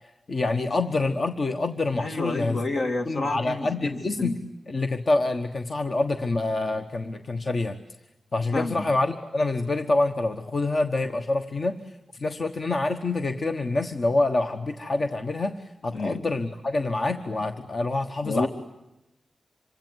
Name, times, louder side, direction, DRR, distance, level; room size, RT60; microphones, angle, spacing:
voice 1, 0.3-2.7 3.1-4.4 4.7-7.8 8.3-18.5, left 2 dB, 45° left, 6 dB, 1.2 m, -26 dB
voice 2, 2.0-4.4 8.5-8.8 15.9-16.2 18.2-18.5, left 2 dB, 65° left, 4 dB, 2.3 m, -29 dB
26.5 x 24.0 x 9.3 m, 0.92 s
wide cardioid pair, 130°, 0 cm